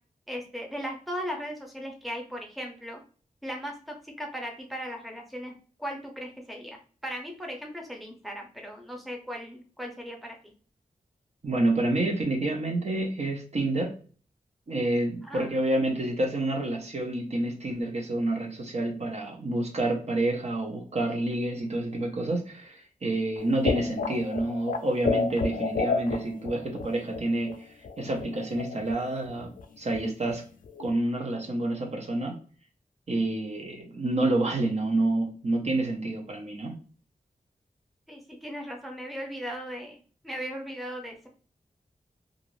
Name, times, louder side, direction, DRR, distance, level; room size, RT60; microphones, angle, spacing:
voice 1, 0.3-3.0 3.4-5.5 5.8-10.5 15.2-15.5 38.1-40.0 40.2-41.3, equal, ahead, 1 dB, 0.7 m, -37 dB
voice 2, 11.4-13.9 14.7-27.5 28.0-29.5 29.8-30.4 30.8-32.3 33.1-36.8, right 2 dB, 50° right, 1 dB, 0.7 m, -28 dB
sound 1, 23.4-27.2 27.5-27.6 27.8-29.0 29.3-29.6 29.9-30.0 30.3-30.4 30.6-30.9, left 4 dB, 65° left, 0.4 m, -31 dB
2.5 x 2.5 x 3.1 m, 0.41 s
wide cardioid pair, 95°, 15 cm